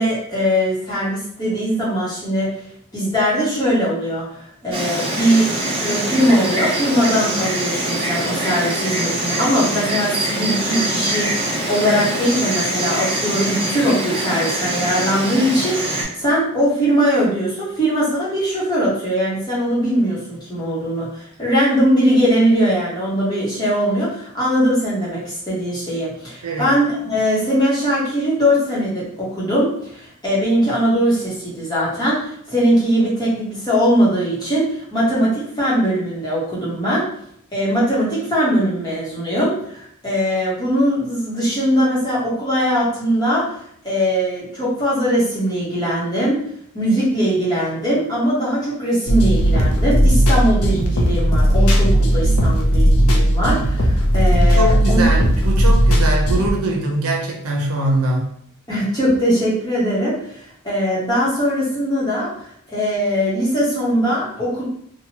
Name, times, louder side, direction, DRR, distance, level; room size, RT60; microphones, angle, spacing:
voice 1, 0.0-2.5 2.9-5.5 5.8-20.2 20.5-37.1 37.5-43.5 43.8-46.4 46.7-55.0 58.7-64.6, equal, 20° left, -8 dB, 0.9 m, -20 dB
Insect, 4.7-16.0, right 1 dB, 25° right, 0.7 m, -23 dB
sound 1, 49.1-56.5, equal, 80° left, 0.6 m, -16 dB
voice 2, 54.5-58.3, right 1 dB, 80° right, -1 dB, 0.7 m, -22 dB
2.9 x 2.2 x 2.9 m, 0.68 s
head